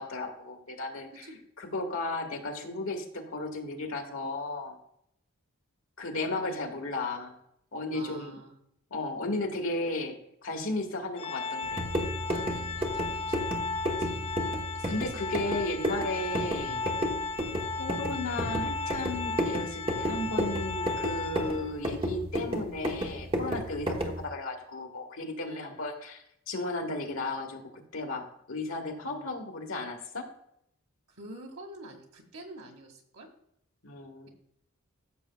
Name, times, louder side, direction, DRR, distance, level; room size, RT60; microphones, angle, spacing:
voice 1, 0.0-1.3 1.6-4.8 6.0-7.4 7.7-8.4 8.9-10.2 10.4-11.8 14.8-16.8 17.8-30.3 33.8-34.3, left 2 dB, 65° left, 2 dB, 1.7 m, -34 dB
voice 2, 7.9-8.6 12.2-13.5 14.0-14.3 14.7-15.3 25.4-25.8 29.1-29.3 31.1-33.3, right 1 dB, 75° right, 2 dB, 2.1 m, -48 dB
Organ, 11.2-21.9, left 4 dB, 25° left, 0.4 m, -35 dB
sound 1, 11.6-24.2, equal, 25° right, 1.0 m, -33 dB
13.5 x 6.9 x 2.3 m, 0.73 s
head